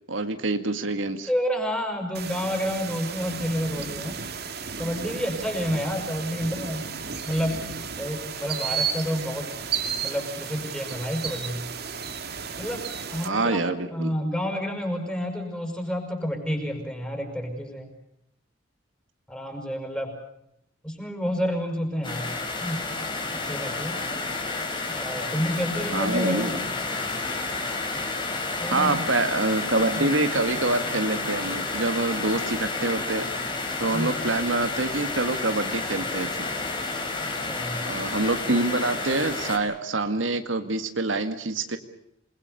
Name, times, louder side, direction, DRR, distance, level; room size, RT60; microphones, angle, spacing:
voice 1, 0.1-1.3 13.2-14.1 25.9-26.6 28.7-33.3 33.8-36.5 37.8-41.8, right 2 dB, 85° right, 8 dB, 1.9 m, -26 dB
voice 2, 1.3-4.2 4.8-6.9 7.3-7.7 8.0-9.5 10.0-11.7 12.6-13.6 13.9-17.9 19.3-20.1 20.8-22.3 22.6-22.9 23.3-24.0 24.9-26.6 28.6-29.1 29.9-30.1 33.9-34.4 37.2-37.9, equal, 5° left, 3 dB, 6.5 m, -29 dB
sound 1, 2.1-13.3, right 6 dB, 55° right, 2.2 m, -33 dB
sound 2, 22.0-39.6, left 3 dB, 25° left, 4.2 m, -30 dB
28.0 x 21.5 x 6.9 m, 0.78 s
head